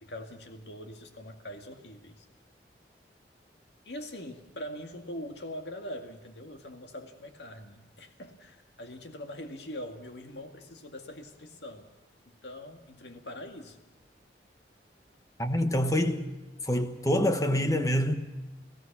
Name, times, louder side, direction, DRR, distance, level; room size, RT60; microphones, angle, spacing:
voice 1, 0.0-2.3 3.9-11.9 12.3-13.8, left 1 dB, 80° left, 2.0 m, -43 dB
voice 2, 15.4-16.3 16.6-18.2, equal, 20° left, 1.1 m, -26 dB
29.5 x 16.0 x 6.0 m
head